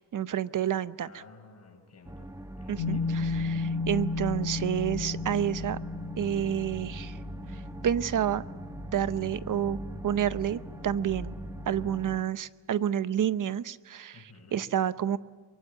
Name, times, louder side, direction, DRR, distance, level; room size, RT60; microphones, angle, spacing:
voice 1, 0.1-1.2 2.7-5.8 6.2-7.2 7.8-8.4 8.9-9.8 10.0-11.3 11.7-15.2, right 9 dB, 45° right, 16 dB, 0.8 m, -29 dB
voice 2, 1.0-2.3 2.6-3.3 14.1-14.6, left 4 dB, 35° left, 1 dB, 7.2 m, -53 dB
sound 1, 2.0-12.2, right 1 dB, 5° right, 1.0 m, -41 dB
sound 2, 2.8-12.2, left 4 dB, 80° left, 1.8 m, -36 dB
23.5 x 23.0 x 8.5 m, 1.5 s
wide cardioid pair, 140°, 43 cm